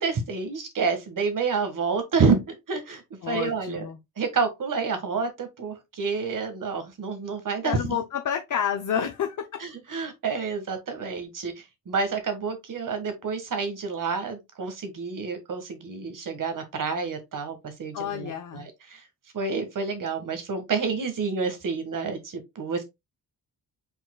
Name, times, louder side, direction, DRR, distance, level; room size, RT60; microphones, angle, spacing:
voice 1, 0.0-3.9 4.2-8.0 9.6-19.0 19.3-22.8, right 4 dB, 55° right, 1.6 m, -29 dB
voice 2, 3.2-4.0 7.6-9.4 17.9-18.7, left 8 dB, 50° left, 0.8 m, -29 dB
5.3 x 4.3 x 2.3 m
cardioid pair, 70°, 39 cm